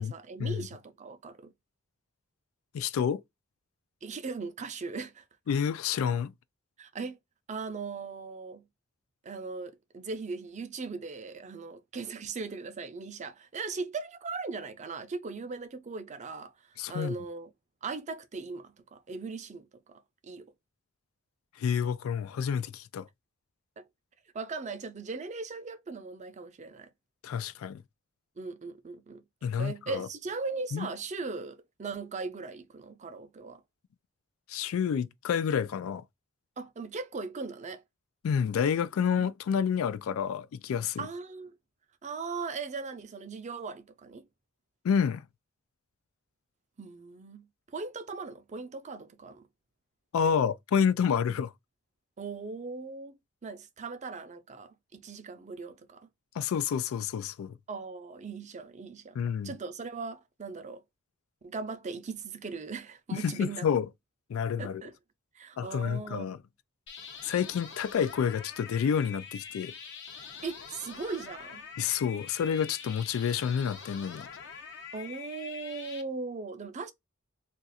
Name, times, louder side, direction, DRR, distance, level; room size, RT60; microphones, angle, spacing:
voice 1, 0.0-1.5 4.0-5.2 6.8-7.2 7.5-8.6 9.2-16.5 16.9-17.5 17.8-20.5 23.8-23.9 24.3-26.9 28.4-29.2 29.6-33.6 36.6-37.8 39.2-39.3 41.0-41.6 42.0-44.3 46.8-47.5 47.7-49.4 52.2-56.1 57.7-60.8 61.4-63.7 64.6-65.0 65.3-66.4 70.4-71.6 74.9-76.9, right 4 dB, 35° right, 0.5 m, -39 dB
voice 2, 2.7-3.2 5.5-6.3 16.8-17.2 21.6-23.1 27.2-27.8 29.4-30.1 30.7-30.9 34.5-36.0 38.2-41.1 44.8-45.3 50.1-51.5 56.4-57.6 59.2-59.5 63.1-63.9 64.3-64.8 65.6-66.4 67.2-69.7 71.8-74.3, left 7 dB, 75° left, 0.3 m, -29 dB
sound 1, 66.9-76.0, left 6 dB, 60° left, 0.7 m, -45 dB
2.5 x 2.4 x 4.0 m
head